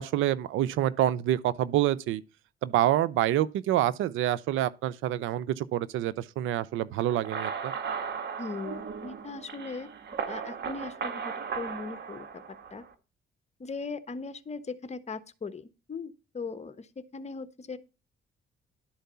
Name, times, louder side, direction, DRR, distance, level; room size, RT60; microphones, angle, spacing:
voice 1, 0.0-2.2 2.6-7.7, right 13 dB, 90° right, 0.6 m, -27 dB
sound 1, 7.1-12.9, right 6 dB, 60° right, 1.5 m, -36 dB
voice 2, 8.4-9.9 10.3-12.8 13.6-17.8, left 4 dB, 35° left, 1.2 m, -39 dB
11.5 x 4.6 x 6.8 m
cardioid pair, 90°, 20 cm